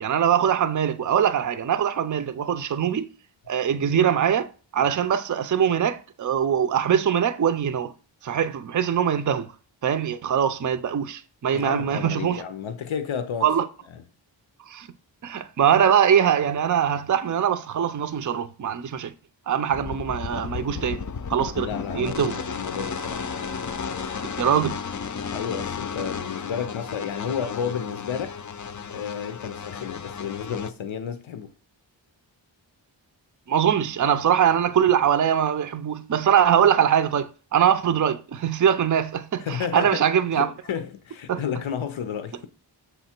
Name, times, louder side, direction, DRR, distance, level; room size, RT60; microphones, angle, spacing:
voice 1, 0.0-3.1 3.5-4.5 4.7-7.9 8.2-9.5 9.8-12.4 13.4-13.6 14.7-14.9 15.2-19.1 19.5-21.0 21.3-21.7 21.9-22.3 24.4-24.8 33.5-40.5 41.3-41.4, right 8 dB, 40° right, 0.5 m, -22 dB
voice 2, 11.5-13.5 14.0-14.1 21.6-23.3 25.3-28.4 28.9-31.5 39.4-40.1 40.4-42.5, left 7 dB, 90° left, 0.6 m, -31 dB
sound 1, 19.7-30.7, left 6 dB, 40° left, 0.5 m, -33 dB
6.7 x 3.6 x 4.3 m
wide cardioid pair, 60°, 46 cm